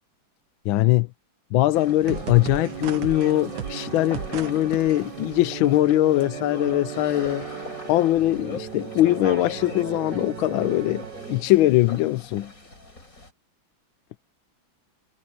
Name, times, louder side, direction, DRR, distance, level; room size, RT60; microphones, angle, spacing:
voice 1, 0.6-1.1 1.5-7.4 7.9-12.5, left 15 dB, 90° left, 1.4 m, -21 dB
sound 1, 1.7-13.3, left 2 dB, 40° left, 5.7 m, -40 dB
sound 2, 2.0-11.4, right 9 dB, 60° right, 1.7 m, -36 dB
omnidirectional pair, 2.2 m